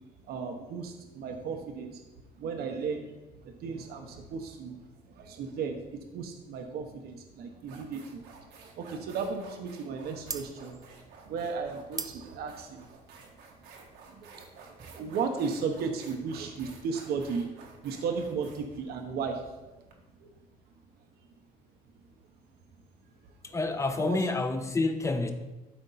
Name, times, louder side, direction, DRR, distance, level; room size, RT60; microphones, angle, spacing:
voice 1, 0.3-2.0 2.4-3.1 3.4-4.8 5.1-8.2 8.8-12.9 14.1-14.3 14.7-17.5 17.8-19.4 20.2-20.3 23.5-23.6 24.0-24.2, right 5 dB, 70° right, 4 dB, 1.0 m, -35 dB
sound 1, 7.0-7.2 7.6-19.9, right 5 dB, 85° right, 1.5 m, -52 dB
sound 2, 10.2-15.4, right 5 dB, 20° right, 0.5 m, -43 dB
voice 2, 23.4-25.3, left 3 dB, 15° left, 7 dB, 0.8 m, -28 dB
12.5 x 4.3 x 4.1 m, 1.1 s
cardioid pair, 110°, 17 cm